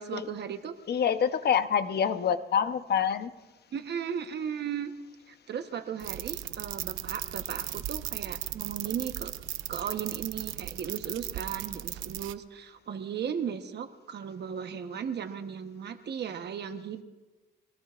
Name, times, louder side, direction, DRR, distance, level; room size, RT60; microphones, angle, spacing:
voice 1, 0.0-0.8 3.7-4.9 5.3-9.3 9.7-17.0, right 8 dB, 60° right, 1.1 m, -36 dB
voice 2, 0.9-3.3, left 7 dB, 55° left, 0.9 m, -26 dB
sound 1, 6.0-12.3, right 13 dB, 80° right, 0.7 m, -37 dB
26.0 x 18.0 x 2.5 m
cardioid pair, 90°, 20 cm